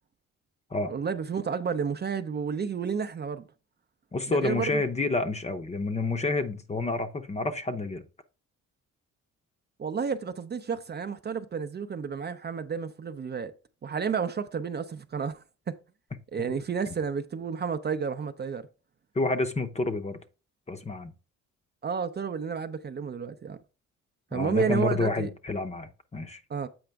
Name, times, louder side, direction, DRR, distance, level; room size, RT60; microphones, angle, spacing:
voice 1, 0.9-3.4 4.3-4.8 9.8-13.5 13.8-15.8 16.3-18.7 21.8-23.6 24.3-25.3 26.5-26.7, right 6 dB, 35° right, 0.6 m, -31 dB
voice 2, 4.1-8.0 16.5-16.6 19.1-20.2 20.7-21.1 24.3-26.4, left 3 dB, 20° left, 0.7 m, -29 dB
7.9 x 4.9 x 3.4 m
cardioid pair, 90°, 30 cm